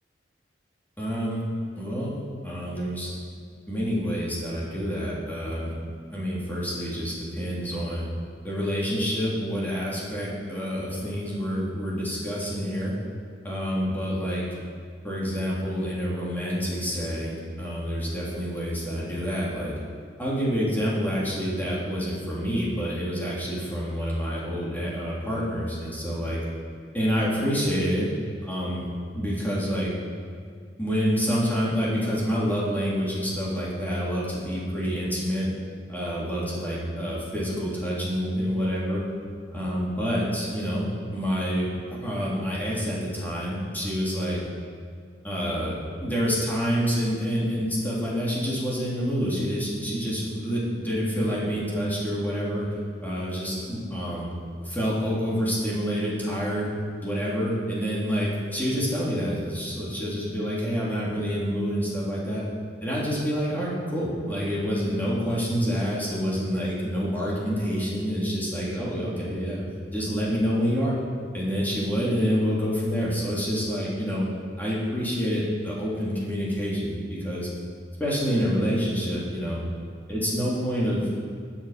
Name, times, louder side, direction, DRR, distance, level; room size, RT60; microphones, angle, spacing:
voice 1, 1.0-1.4 1.7-2.2 2.4-3.1 3.7-5.7 6.1-8.1 8.4-12.9 13.4-14.4 15.0-19.7 20.2-26.4 26.9-28.1 28.4-28.8 29.1-29.9 30.8-35.5 35.9-39.0 39.5-41.7 42.0-44.4 45.2-52.7 53.0-54.3 54.6-56.7 57.0-62.4 62.8-69.6 69.9-71.0 71.3-74.3 74.6-77.5 78.0-79.6 80.1-81.1, equal, 10° left, -7 dB, 3.3 m, -27 dB
21.0 x 7.5 x 5.1 m, 2.2 s
head